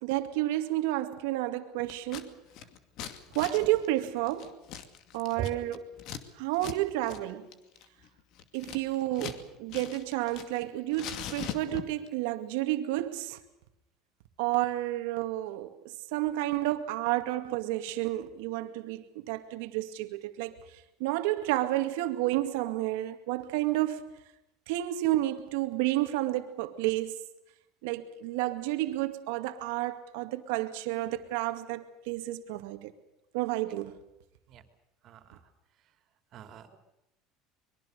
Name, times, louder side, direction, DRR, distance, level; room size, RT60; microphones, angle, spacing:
voice 1, 0.0-2.3 3.3-4.6 5.1-5.9 6.4-7.5 8.5-13.4 14.4-24.1 24.7-27.2 27.8-32.9 33.3-34.0, right 16 dB, 80° right, 2.2 m, -31 dB
Scissors, 1.9-2.3 2.5-6.2 6.5-6.8 7.0-7.2 7.5-9.4 9.7-10.6 10.9-12.1, left 9 dB, 55° left, 2.4 m, -41 dB
voice 2, 35.0-35.4 36.3-36.8, right 10 dB, 45° right, 3.2 m, -39 dB
24.5 x 22.5 x 6.8 m
cardioid pair, 140°, 0 cm